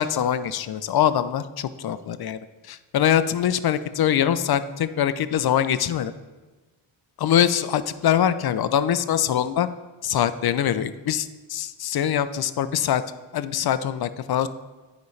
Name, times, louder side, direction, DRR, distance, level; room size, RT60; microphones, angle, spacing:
voice 1, 0.0-2.4 2.7-6.1 7.2-9.7 10.0-13.0 13.3-14.5, left 10 dB, 55° left, 13 dB, 0.5 m, -23 dB
9.5 x 5.2 x 3.2 m, 1.3 s
cardioid pair, 70°, 47 cm